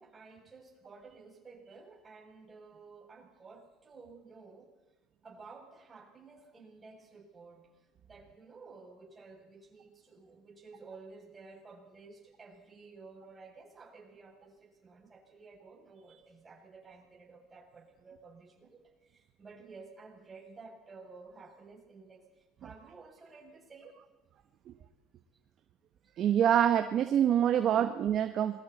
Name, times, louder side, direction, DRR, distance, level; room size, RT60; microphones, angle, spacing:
voice 1, 0.0-4.7 5.2-7.7 8.0-24.0, right 4 dB, 20° right, -2 dB, 7.5 m, -53 dB
voice 2, 26.2-28.6, right 9 dB, 50° right, 7 dB, 1.3 m, -26 dB
27.5 x 22.5 x 4.3 m, 1.1 s
cardioid pair, 115°, 0 cm